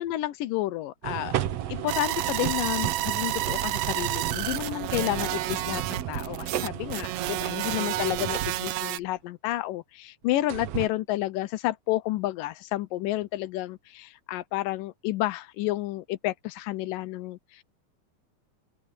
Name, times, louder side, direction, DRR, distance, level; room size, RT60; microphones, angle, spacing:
voice 1, 0.0-1.4 1.7-17.6, left 15 dB, 85° left, 2.5 m, -30 dB
sound 1, 1.0-8.9 10.5-10.9, right 11 dB, 60° right, 1.9 m, -34 dB
sound 2, 1.9-9.0, right 15 dB, 85° right, 1.4 m, -30 dB
open air
omnidirectional pair, 3.8 m